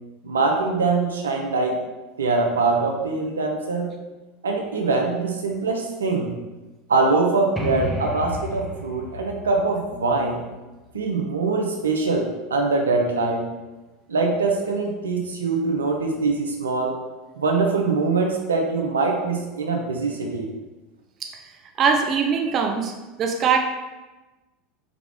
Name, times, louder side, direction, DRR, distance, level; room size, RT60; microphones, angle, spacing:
voice 1, 0.2-1.8 2.2-3.9 4.4-6.3 6.9-10.4 10.9-13.5 14.1-16.9 17.4-20.5, right 3 dB, 85° right, 1 dB, 0.6 m, -23 dB
sound 1, 7.6-11.2, left 1 dB, ahead, 0.7 m, -33 dB
voice 2, 21.8-22.9 23.2-23.6, right 6 dB, 40° right, 3 dB, 0.5 m, -21 dB
4.9 x 2.4 x 3.5 m, 1.1 s
hypercardioid pair, 80°, 0 cm